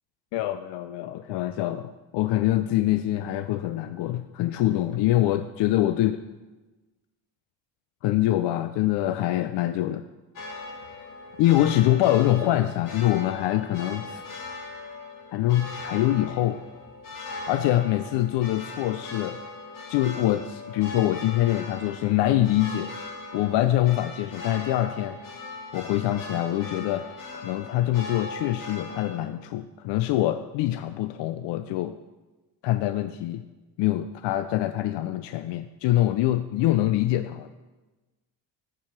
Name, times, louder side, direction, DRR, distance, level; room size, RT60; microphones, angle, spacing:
voice 1, 0.3-6.1 8.0-10.0 11.4-14.2 15.3-16.6 17.5-19.4 19.9-22.9 23.3-25.2 25.7-27.1 27.3-31.9 32.6-33.4 33.8-37.5, left 14 dB, 65° left, 10 dB, 0.5 m, -24 dB
sound 1, 10.4-29.2, left 3 dB, 45° left, 1.5 m, -39 dB
8.3 x 4.9 x 5.8 m, 1.2 s
cardioid pair, 95°, 46 cm